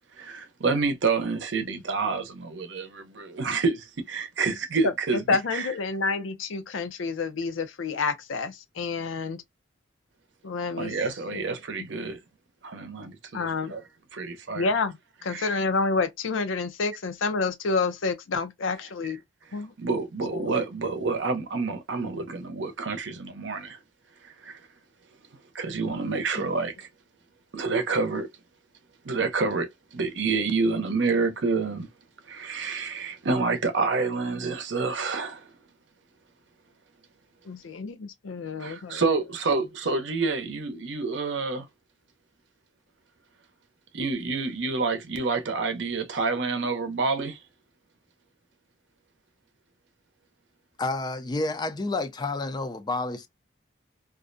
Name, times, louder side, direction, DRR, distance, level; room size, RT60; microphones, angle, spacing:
voice 1, 0.2-5.7 10.8-12.2 12.6-13.8 14.1-14.7 15.3-15.5 19.0-19.1 19.8-23.8 24.2-24.6 25.5-26.9 27.5-28.3 29.0-31.9 32.3-35.5 38.6-41.7 43.9-47.4, right 4 dB, 70° right, 0.6 m, -28 dB
voice 2, 5.3-9.4 10.4-10.9 11.3-11.4 13.3-13.7 14.6-14.9 15.2-19.2 19.5-19.7 20.3-20.5 26.4-26.5 37.5-39.0, left 4 dB, 90° left, 0.5 m, -28 dB
voice 3, 50.8-53.3, left 2 dB, 20° left, 0.3 m, -29 dB
2.4 x 2.1 x 2.5 m
head